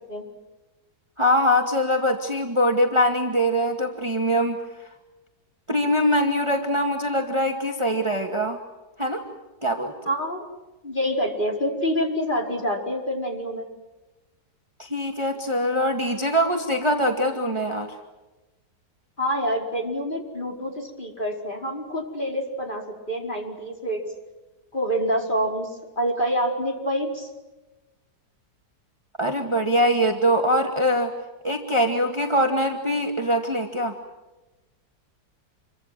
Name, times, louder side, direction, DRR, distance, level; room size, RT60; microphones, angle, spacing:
voice 1, 1.2-4.6 5.7-8.6 9.0-9.2 9.6-9.9 14.8-17.9 29.2-31.1 31.4-33.9, equal, 15° right, 3 dB, 2.2 m, -23 dB
voice 2, 10.1-10.5 10.8-13.7 19.2-24.0 24.7-27.3, equal, 30° left, 1 dB, 5.1 m, -27 dB
28.0 x 24.5 x 7.7 m, 1.1 s
omnidirectional pair, 1.8 m